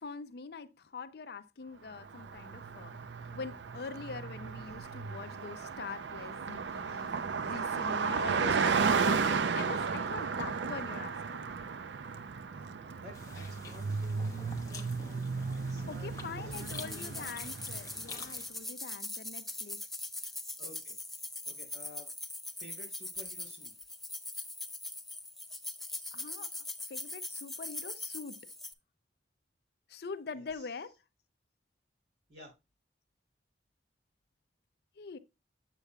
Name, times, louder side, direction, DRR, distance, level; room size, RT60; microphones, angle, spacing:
voice 1, 0.0-2.9 3.3-11.5 15.9-19.8 26.1-26.5 26.9-28.4 29.9-30.9 35.0-35.2, left 4 dB, 60° left, 0.5 m, -44 dB
Car passing by, 2.0-18.1, right 5 dB, 85° right, 0.5 m, -34 dB
voice 2, 13.0-16.1 16.4-17.2 20.2-20.3 20.6-22.1 22.6-23.7 30.3-30.7 32.3-32.5, equal, 65° right, 3.2 m, -53 dB
sound 1, 13.1-18.5, left 4 dB, 20° left, 0.9 m, -49 dB
sound 2, 16.5-28.7, left 2 dB, ahead, 0.5 m, -41 dB
8.1 x 6.9 x 2.3 m
head